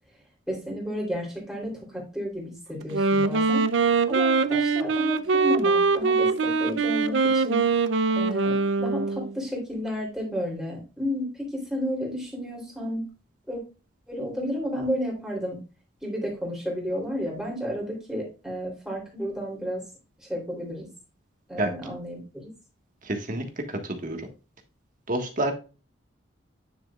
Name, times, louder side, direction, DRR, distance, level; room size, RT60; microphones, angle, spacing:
voice 1, 0.5-3.7 4.1-7.7 8.1-13.1 13.5-13.6 14.1-15.6 16.0-19.9 20.2-20.9 21.5-22.5, equal, 5° right, -2 dB, 3.2 m, -32 dB
Wind instrument woodwind instrument, 2.8-9.3, right 4 dB, 75° right, 0.5 m, -23 dB
voice 2, 23.0-24.3 25.1-25.5, right 1 dB, 45° right, 4 dB, 1.5 m, -29 dB
9.7 x 6.6 x 2.4 m, 0.32 s
head